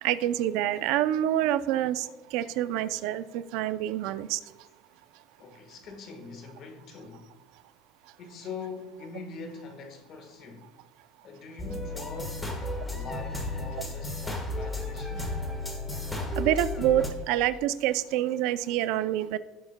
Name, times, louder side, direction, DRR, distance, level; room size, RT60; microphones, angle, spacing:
voice 1, 0.0-4.4 16.4-19.4, right 12 dB, 65° right, 0.4 m, -27 dB
voice 2, 5.4-7.3 8.2-10.7 11.2-15.3, left 4 dB, 40° left, 1.4 m, -43 dB
sound 1, 11.6-17.1, left 2 dB, 10° left, 1.3 m, -33 dB
17.5 x 7.1 x 2.2 m
cardioid pair, 145°, 0 cm